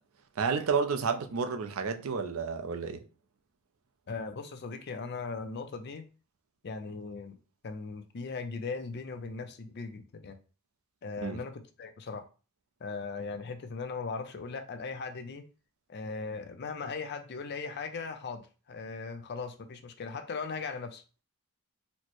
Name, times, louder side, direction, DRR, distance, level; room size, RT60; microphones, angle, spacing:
voice 1, 0.4-3.0 11.2-11.4, right 5 dB, 65° right, 0.5 m, -30 dB
voice 2, 4.1-6.1 6.6-7.4 7.6-10.4 11.0-12.3 12.8-15.5 15.9-21.0, left 4 dB, 50° left, 0.5 m, -38 dB
4.2 x 2.1 x 2.9 m
head